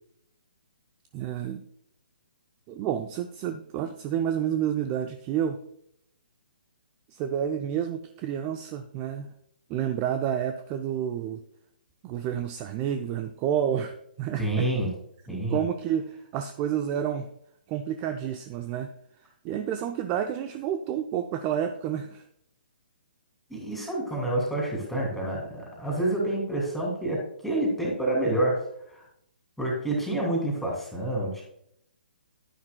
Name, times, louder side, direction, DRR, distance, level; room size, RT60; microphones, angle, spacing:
voice 1, 1.1-1.6 2.7-5.6 7.1-9.3 9.7-11.4 12.0-14.7 15.3-17.3 17.7-18.9 19.4-22.2, right 9 dB, 25° right, 7 dB, 0.5 m, -29 dB
voice 2, 14.4-14.9 15.3-15.6 23.5-28.6 28.9-29.0 29.6-31.4, right 1 dB, ahead, -2 dB, 2.7 m, -28 dB
11.0 x 9.9 x 2.2 m, 0.73 s
figure-of-eight pair, 130°, 5 cm